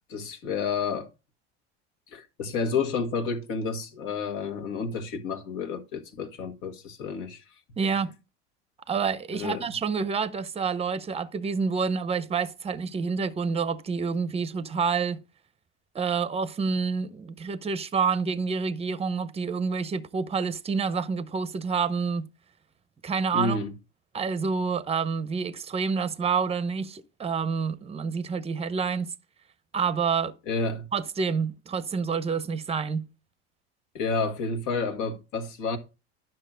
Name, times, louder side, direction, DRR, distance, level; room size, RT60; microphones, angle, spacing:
voice 1, 0.1-1.1 2.1-7.4 9.3-9.6 23.3-23.7 30.5-30.9 33.9-35.8, left 4 dB, 60° left, 1.7 m, -30 dB
voice 2, 7.8-8.1 8.9-15.2 15.9-22.3 23.0-23.7 24.1-29.1 29.7-30.3 30.9-33.1, right 5 dB, 15° right, 0.8 m, -28 dB
10.0 x 6.0 x 3.8 m
hypercardioid pair, 85°, 35 cm